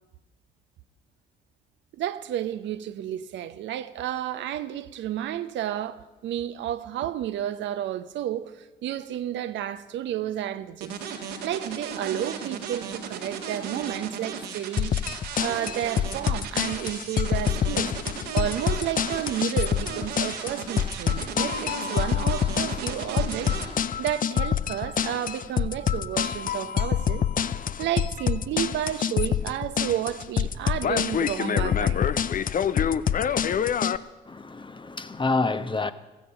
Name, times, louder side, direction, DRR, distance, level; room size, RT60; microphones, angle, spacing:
voice 1, 1.9-14.9 15.4-17.9 18.3-23.5 24.0-27.2 27.8-32.0, right 11 dB, 60° right, 0.8 m, -31 dB
sound 1, 10.8-23.7, right 6 dB, 80° right, 1.9 m, -36 dB
sound 2, 14.8-34.0, left 8 dB, 40° left, 0.7 m, -26 dB
voice 2, 34.3-35.9, left 3 dB, 25° left, 1.1 m, -28 dB
15.5 x 15.0 x 5.6 m
figure-of-eight pair, 40°, 21 cm